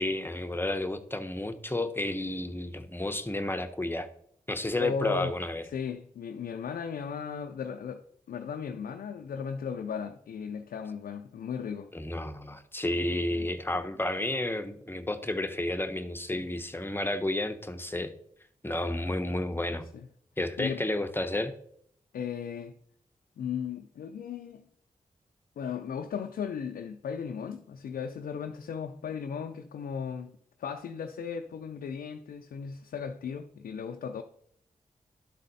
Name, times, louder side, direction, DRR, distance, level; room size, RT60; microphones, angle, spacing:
voice 1, 0.0-4.1 4.5-5.6 11.9-18.1 18.6-19.8 20.4-21.5, left 1 dB, 15° left, 0.9 m, -31 dB
voice 2, 4.8-5.3 5.7-8.0 8.3-11.9 13.3-13.5 16.3-16.5 19.9-20.1 20.6-20.8 22.1-22.7 23.4-24.6 25.6-30.3 30.6-34.2, left 7 dB, 85° left, 0.4 m, -36 dB
11.5 x 4.1 x 4.0 m
cardioid pair, 45°, 15 cm